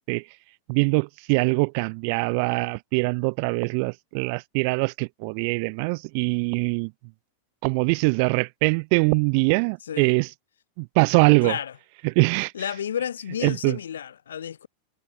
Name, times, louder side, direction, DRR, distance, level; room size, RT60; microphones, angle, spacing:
voice 1, 0.7-6.9 7.6-10.3 10.8-11.6 12.0-12.5 13.4-13.8, right 36 dB, 45° right, 0.4 m, -23 dB
voice 2, 11.4-11.7 12.5-14.7, left 9 dB, 65° left, 0.6 m, -31 dB
figure-of-eight pair, 90°, 0 cm